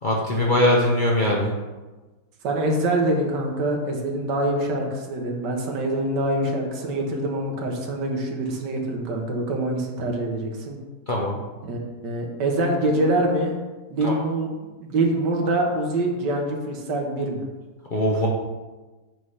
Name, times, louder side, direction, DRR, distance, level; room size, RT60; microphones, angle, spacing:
voice 1, 0.0-1.5 11.1-11.4 14.0-14.1 17.9-18.3, left 1 dB, 50° left, -3 dB, 0.6 m, -21 dB
voice 2, 2.4-10.8 11.6-13.5 13.9-14.5 14.8-17.4, right 1 dB, 85° right, 1 dB, 1.6 m, -25 dB
7.5 x 3.2 x 5.5 m, 1.2 s
omnidirectional pair, 1.8 m